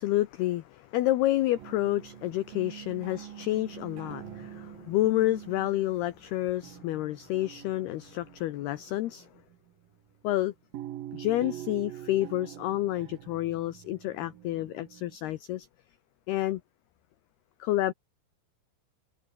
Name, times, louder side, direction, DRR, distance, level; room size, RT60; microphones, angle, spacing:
voice 1, 0.0-9.3 10.2-10.5 11.1-15.7 16.3-16.6 17.6-17.9, left 15 dB, 90° left, 2.2 m, -29 dB
sound 1, 1.6-9.9 10.7-15.2, right 13 dB, 75° right, 2.1 m, -45 dB
omnidirectional pair, 5.9 m